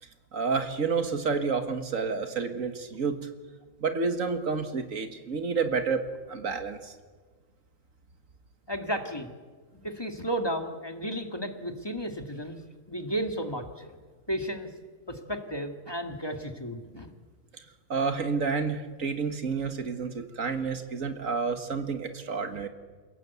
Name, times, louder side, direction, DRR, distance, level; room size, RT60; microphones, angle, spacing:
voice 1, 0.3-3.3 3.8-6.9 17.9-22.7, right 5 dB, 80° right, 8 dB, 2.0 m, -29 dB
voice 2, 8.7-9.3 9.8-12.6 12.9-13.9 14.3-14.7 15.1-17.1, equal, 20° left, 5 dB, 2.0 m, -33 dB
29.0 x 16.5 x 8.3 m, 1.5 s
omnidirectional pair, 1.4 m